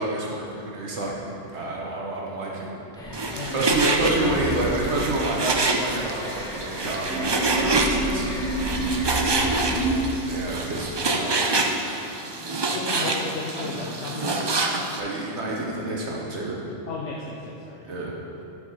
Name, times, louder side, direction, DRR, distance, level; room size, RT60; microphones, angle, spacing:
voice 1, 0.0-2.7 3.5-8.3 10.2-11.5 13.0-13.3 15.0-16.6 17.9-18.1, right 2 dB, 75° right, -3 dB, 1.3 m, -28 dB
sound 1, 3.0-10.0, right 1 dB, 5° left, 1.4 m, -30 dB
Frying (food), 3.1-15.0, right 2 dB, 30° right, 0.5 m, -26 dB
voice 2, 3.9-4.8 9.2-9.6 12.7-14.4 16.9-17.8, left 3 dB, 85° left, -2 dB, 1.1 m, -35 dB
11.0 x 4.9 x 5.5 m, 2.8 s
omnidirectional pair, 1.2 m